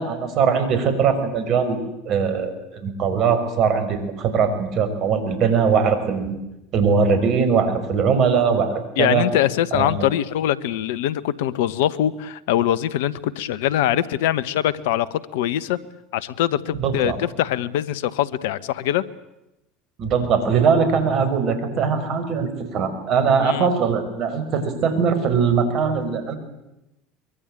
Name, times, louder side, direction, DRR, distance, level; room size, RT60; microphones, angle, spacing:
voice 1, 0.0-1.8 2.1-6.4 6.7-9.3 9.7-10.1 16.7-17.2 20.0-26.4, right 6 dB, 55° right, 9 dB, 5.7 m, -21 dB
voice 2, 9.0-15.8 16.1-19.0 23.4-23.7, left 12 dB, 75° left, 18 dB, 1.2 m, -23 dB
24.0 x 22.5 x 9.1 m, 0.93 s
hypercardioid pair, 75°, 0 cm